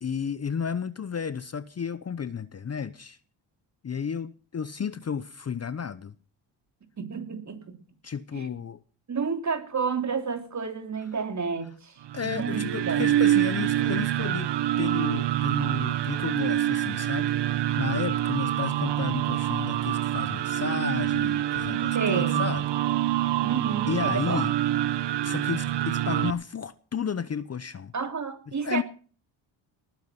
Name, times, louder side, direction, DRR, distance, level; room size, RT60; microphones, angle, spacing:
voice 1, 0.0-3.2 3.8-6.1 8.0-8.8 12.1-14.5 14.8-22.7 23.0-23.4 23.9-24.5 25.2-27.9 28.5-28.8, left 6 dB, 30° left, 0.9 m, -33 dB
voice 2, 7.0-7.8 8.3-8.5 9.1-13.1 21.6-22.5 23.4-24.4 27.9-28.8, right 5 dB, 35° right, 3.1 m, -31 dB
sound 1, 12.0-26.3, right 13 dB, 60° right, 1.0 m, -26 dB
19.5 x 9.3 x 5.9 m
cardioid pair, 80°, 47 cm